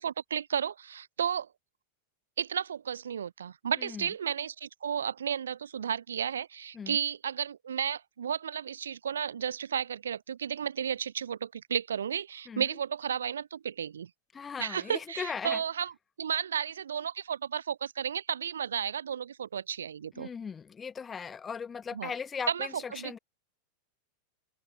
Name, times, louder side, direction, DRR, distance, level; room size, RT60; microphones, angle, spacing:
voice 1, 0.0-1.5 2.4-14.1 14.6-20.3 21.9-22.1 22.5-23.2, right 8 dB, 85° right, 0.7 m, -33 dB
voice 2, 14.3-15.6 20.1-23.2, left 6 dB, 20° left, 5.2 m, -38 dB
open air
hypercardioid pair, 100°, 0 cm